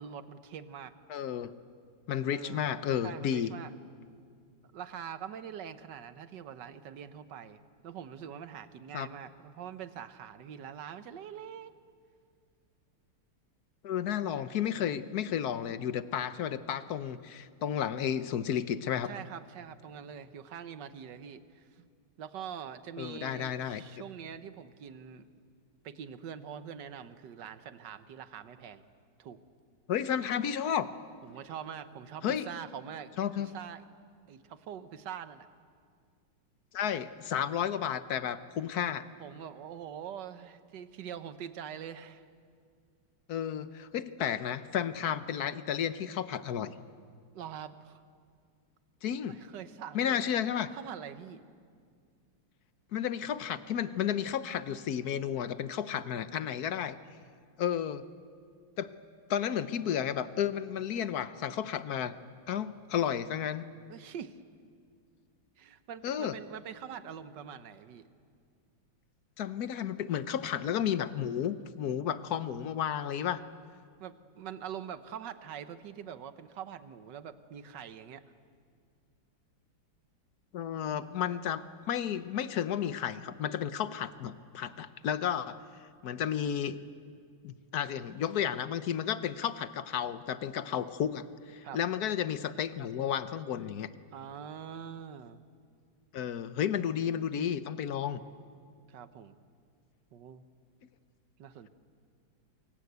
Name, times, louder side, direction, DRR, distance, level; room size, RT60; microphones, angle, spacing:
voice 1, 0.0-0.9 2.3-2.6 3.0-3.7 4.7-11.7 14.3-14.5 14.8-15.0 19.0-21.8 22.2-25.3 25.8-28.8 29.2-29.4 31.2-33.1 33.4-33.8 34.3-35.5 39.2-42.2 47.3-48.0 49.3-50.3 50.7-51.4 63.9-64.4 65.6-68.1 74.0-78.2 91.6-91.8 94.1-95.4 98.9-99.3 100.1-100.4 101.4-101.7, right 8 dB, 65° right, 11 dB, 1.6 m, -44 dB
voice 2, 1.1-1.5 2.1-3.5 8.9-9.1 13.8-19.1 23.0-23.8 29.9-30.9 32.2-32.5 33.2-33.5 36.7-39.0 43.3-46.7 49.0-49.4 49.9-50.7 52.9-57.0 57.6-58.0 58.8-58.9 59.3-62.1 62.5-63.6 66.0-66.4 69.4-73.4 80.5-81.6 81.9-85.6 86.0-86.8 87.4-93.9 96.1-98.2, left 9 dB, 60° left, 12 dB, 1.3 m, -32 dB
28.5 x 23.5 x 8.2 m, 2.2 s
omnidirectional pair, 2.1 m